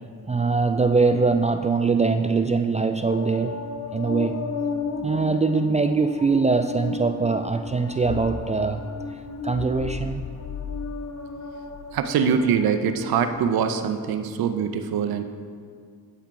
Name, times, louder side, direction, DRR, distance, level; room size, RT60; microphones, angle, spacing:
voice 1, 0.3-3.6 3.9-4.5 5.0-8.8 9.4-10.3, right 4 dB, 20° right, 7 dB, 0.3 m, -22 dB
sound 1, 3.1-13.4, left 4 dB, 45° left, 0.7 m, -34 dB
voice 2, 11.9-15.2, right 7 dB, 80° right, 8 dB, 0.6 m, -23 dB
12.0 x 4.5 x 3.8 m, 2.2 s
supercardioid pair, 45°, 36 cm